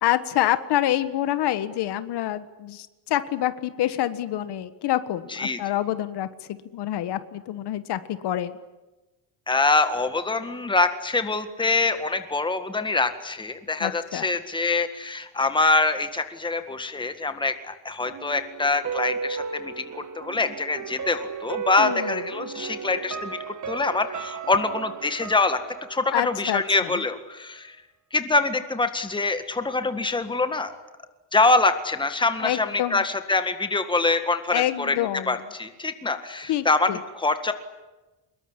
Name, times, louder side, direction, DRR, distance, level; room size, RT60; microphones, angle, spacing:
voice 1, 0.0-6.3 6.7-8.6 13.8-14.3 21.8-22.1 26.1-27.0 32.4-33.0 34.5-35.3 36.5-37.0, left 12 dB, 75° left, 13 dB, 1.5 m, -27 dB
voice 2, 9.5-25.6 25.9-27.8 28.1-30.7 31.3-37.5, left 3 dB, 10° left, 9 dB, 1.8 m, -25 dB
sound 1, 18.1-27.0 27.4-27.5, right 5 dB, 45° right, 2.3 m, -34 dB
25.0 x 21.5 x 10.0 m, 1.1 s
cardioid pair, 160°, 41 cm